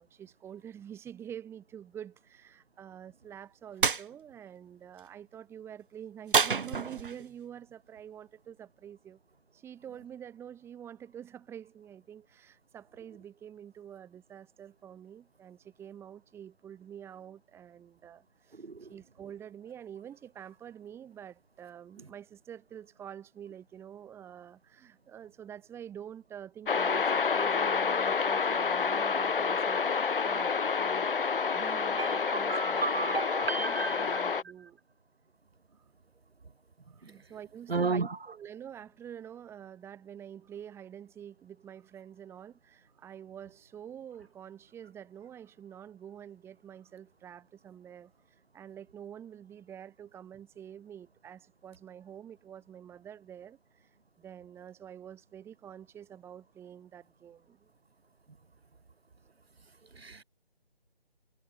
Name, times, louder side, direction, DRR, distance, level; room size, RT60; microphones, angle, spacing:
voice 1, 0.0-9.2 9.5-18.6 18.9-34.8 35.8-35.9 36.9-53.9 54.2-57.7, right 9 dB, 10° right, 7.3 m, -47 dB
sound 1, 3.8-4.0 6.3-7.3, right 5 dB, 55° right, 3.4 m, -27 dB
sound 2, 26.7-34.4, left 5 dB, 55° left, 1.2 m, -29 dB
voice 2, 32.5-34.1 37.7-38.1 60.0-60.2, right 4 dB, 70° right, 1.9 m, -31 dB
figure-of-eight pair, 155°, 32 cm